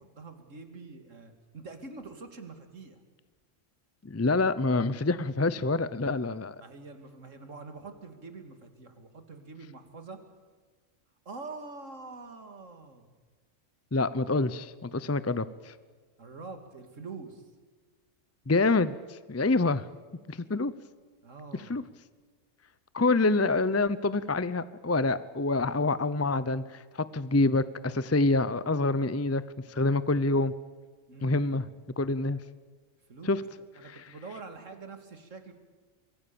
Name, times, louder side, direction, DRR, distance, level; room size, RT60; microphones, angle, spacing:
voice 1, 0.0-3.0 6.6-10.2 11.3-13.1 16.2-17.5 21.2-21.8 31.1-31.7 33.1-33.3 33.7-35.5, right 3 dB, 75° right, 7 dB, 2.7 m, -45 dB
voice 2, 4.0-6.6 13.9-15.7 18.5-19.9 20.3-20.7 21.7-21.8 22.9-29.4 29.7-30.5 31.2-31.6 32.0-32.4 33.2-33.4 33.9-34.0, left 3 dB, 20° left, 16 dB, 0.4 m, -26 dB
25.0 x 22.5 x 7.0 m, 1.5 s
omnidirectional pair, 1.3 m